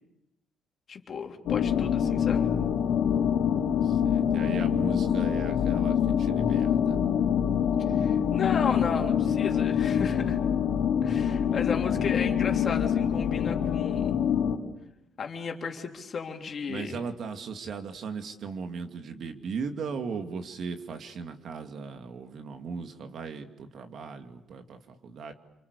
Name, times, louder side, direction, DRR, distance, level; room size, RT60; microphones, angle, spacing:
voice 1, 0.9-2.5 7.9-10.4 11.0-14.2 15.2-17.0, left 5 dB, 50° left, 3 dB, 3.6 m, -34 dB
sound 1, 1.5-14.6, left 8 dB, 85° left, 2.9 m, -25 dB
voice 2, 3.8-7.0 16.7-25.3, right 5 dB, 65° right, 6 dB, 2.6 m, -37 dB
28.0 x 25.0 x 8.4 m, 0.91 s
cardioid pair, 90°, 0 cm